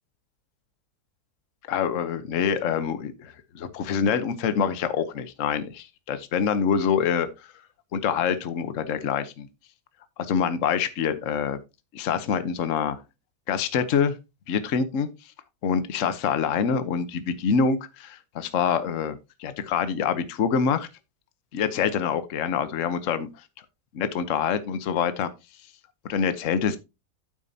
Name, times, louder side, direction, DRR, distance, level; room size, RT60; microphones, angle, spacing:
voice 1, 1.7-7.3 7.9-9.5 10.2-11.6 11.9-13.0 13.5-14.1 14.5-15.1 15.6-20.9 21.5-23.3 23.9-25.3 26.1-26.8, left 7 dB, 55° left, 1.2 m, -25 dB
8.7 x 8.6 x 2.7 m
omnidirectional pair, 1.7 m